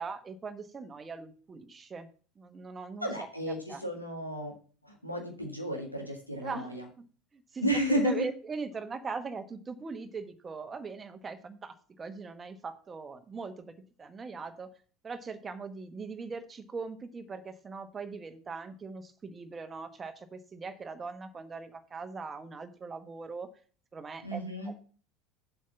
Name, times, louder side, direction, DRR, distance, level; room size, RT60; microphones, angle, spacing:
voice 1, 0.0-2.1 2.4-3.8 6.4-7.0 7.3-13.7 14.0-14.7 15.0-23.5 23.9-24.4 24.6-24.7, right 4 dB, 25° right, 9 dB, 1.1 m, -41 dB
voice 2, 3.0-4.5 4.8-6.8 7.6-8.2 24.2-24.7, equal, 90° left, 1 dB, 1.7 m, -32 dB
7.5 x 5.6 x 5.8 m, 0.40 s
figure-of-eight pair, 70°, 0 cm